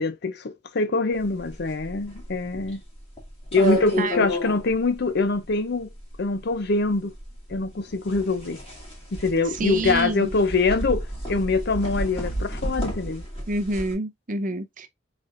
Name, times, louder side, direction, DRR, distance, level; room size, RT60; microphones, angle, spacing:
voice 1, 0.0-2.8 3.5-5.9 6.2-7.1 7.5-8.6 9.1-13.2, left 3 dB, 60° left, 0.6 m, -24 dB
sound 1, 1.2-13.9, equal, 30° left, 2.4 m, -31 dB
voice 2, 9.4-10.3 13.5-14.9, right 2 dB, 45° right, 0.7 m, -28 dB
5.0 x 4.2 x 2.5 m
head